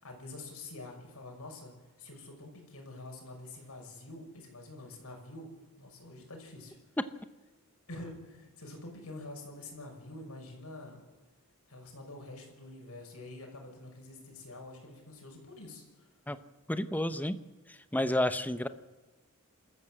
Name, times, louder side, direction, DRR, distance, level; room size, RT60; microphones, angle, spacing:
voice 1, 0.0-1.7 2.0-5.5 5.8-6.8 7.9-11.0 11.7-16.1, left 2 dB, 75° left, 1 dB, 6.0 m, -47 dB
voice 2, 16.7-17.4 17.7-18.7, left 1 dB, 5° left, 11 dB, 0.8 m, -30 dB
26.5 x 14.0 x 7.7 m, 1.2 s
head